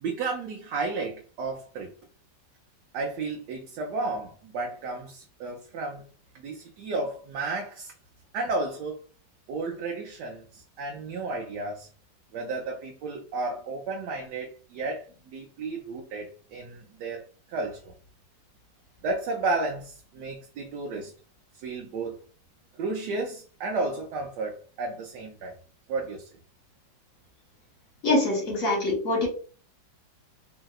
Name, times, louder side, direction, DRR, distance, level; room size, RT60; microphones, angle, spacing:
voice 1, 0.0-1.9 2.9-6.0 6.3-7.9 8.3-9.0 9.5-11.9 12.3-17.9 19.0-21.1 21.6-22.2 22.8-25.5 25.9-26.3, right 3 dB, 75° right, 1.1 m, -33 dB
voice 2, 28.0-29.3, left 2 dB, 55° left, 1.2 m, -24 dB
3.1 x 2.7 x 2.3 m
omnidirectional pair, 2.0 m